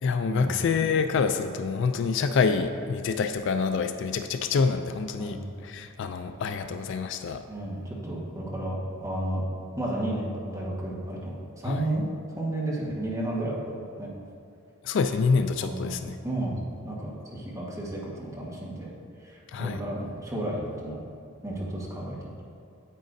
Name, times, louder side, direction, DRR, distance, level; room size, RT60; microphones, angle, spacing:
voice 1, 0.0-7.4 11.6-11.9 14.8-16.2 19.5-19.8, left 5 dB, 55° left, 8 dB, 0.3 m, -26 dB
voice 2, 7.5-9.4 9.8-12.0 12.3-14.1 15.6-16.0 16.2-16.6 16.8-18.9 19.2-21.0 21.4-22.3, right 1 dB, 15° right, -5 dB, 1.3 m, -32 dB
9.1 x 8.4 x 2.6 m, 2.4 s
head